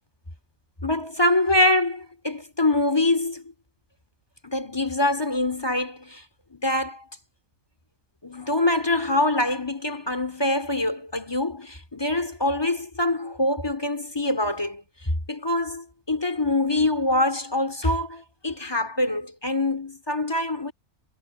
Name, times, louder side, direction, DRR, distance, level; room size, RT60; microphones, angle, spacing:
voice 1, 0.8-3.5 4.4-6.2 6.5-7.0 8.2-20.7, left 1 dB, 15° left, 3.2 m, -24 dB
omnidirectional pair, 1.5 m